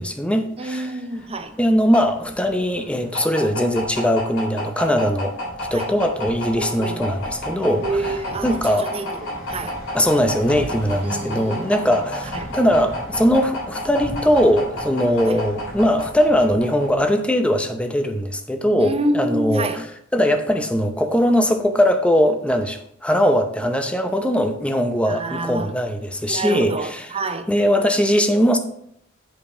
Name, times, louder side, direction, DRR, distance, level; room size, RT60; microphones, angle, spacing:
voice 1, 0.0-1.0 1.6-8.1 8.4-8.9 9.9-27.1 27.5-28.6, equal, 5° left, 0.7 m, -20 dB
voice 2, 0.6-1.6 5.7-5.9 6.6-7.0 7.8-9.8 11.0-11.7 12.3-12.5 15.3-15.4 18.8-19.9 25.1-25.7 26.3-27.5, right 2 dB, 30° right, 0.6 m, -28 dB
sound 1, 1.2-17.2, left 1 dB, 75° left, 3.5 m, -31 dB
7.7 x 5.2 x 4.8 m
head